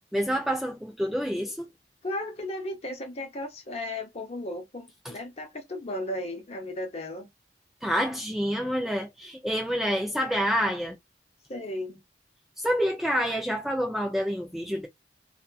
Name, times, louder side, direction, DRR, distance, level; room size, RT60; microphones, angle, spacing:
voice 1, 0.1-1.7 5.0-5.1 7.8-11.0 12.6-14.9, equal, ahead, 0.4 m, -28 dB
voice 2, 2.0-7.3 11.5-12.0, left 1 dB, 35° left, 0.8 m, -35 dB
2.8 x 2.3 x 2.3 m
head